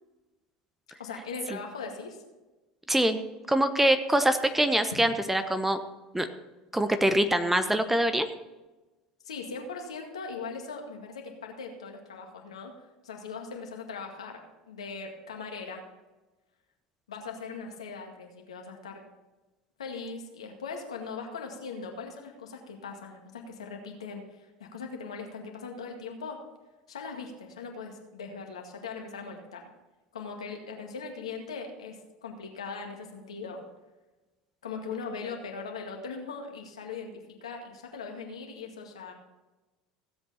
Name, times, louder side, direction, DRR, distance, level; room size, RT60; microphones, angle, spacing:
voice 1, 1.0-2.2 9.2-12.8 13.0-15.8 17.1-19.0 19.8-26.4 26.9-29.7 30.1-33.6 34.6-39.1, left 4 dB, 80° left, 2 dB, 2.0 m, -40 dB
voice 2, 2.9-3.2 3.5-5.8 6.1-6.3 6.7-8.3, right 1 dB, 5° right, 9 dB, 1.0 m, -24 dB
16.0 x 8.0 x 4.2 m, 1.1 s
hypercardioid pair, 75°, 3 cm